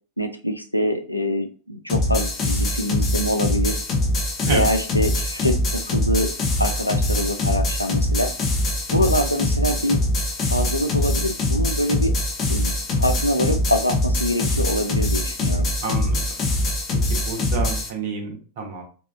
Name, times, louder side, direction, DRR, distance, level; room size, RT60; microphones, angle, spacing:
voice 1, 0.2-3.8 4.4-6.3 6.6-8.3 8.9-10.0 10.4-12.1 12.5-15.7, equal, 90° left, 6 dB, 0.3 m, -24 dB
sound 1, 1.9-17.9, left 1 dB, 30° left, 0.6 m, -23 dB
voice 2, 15.8-16.2 17.1-18.8, right 4 dB, 55° right, 2 dB, 0.8 m, -29 dB
2.6 x 2.3 x 2.4 m, 0.39 s
figure-of-eight pair, 90°, 0 cm